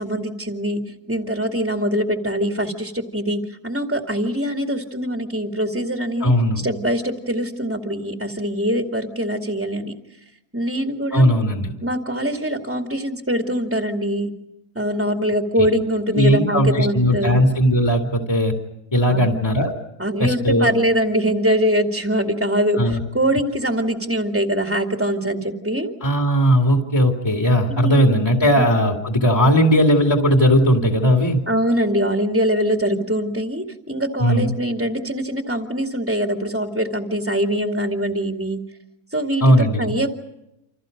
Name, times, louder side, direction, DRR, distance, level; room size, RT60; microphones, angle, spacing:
voice 1, 0.0-10.0 10.5-11.4 11.8-14.3 14.7-17.4 19.1-19.2 20.0-25.9 27.7-28.2 28.6-28.9 31.5-38.6 39.1-40.2, equal, 10° right, 3 dB, 2.3 m, -23 dB
voice 2, 6.2-6.6 11.1-11.7 15.6-15.7 16.1-18.5 18.9-19.7 20.2-20.7 22.8-23.0 26.0-31.4 34.2-34.5 39.4-39.9, equal, 15° left, 2 dB, 2.6 m, -17 dB
29.0 x 27.5 x 5.3 m, 0.85 s
omnidirectional pair, 1.6 m